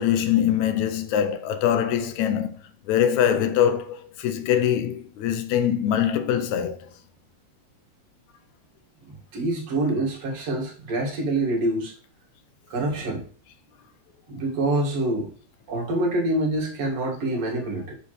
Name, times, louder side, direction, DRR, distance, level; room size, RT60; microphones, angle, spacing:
voice 1, 0.0-2.6 2.9-6.9, left 9 dB, 85° left, 2.1 m, -23 dB
voice 2, 9.1-11.9 12.7-13.2 14.3-15.3 15.7-17.9, right 1 dB, 60° right, 2.9 m, -26 dB
7.1 x 6.9 x 3.2 m
omnidirectional pair, 3.3 m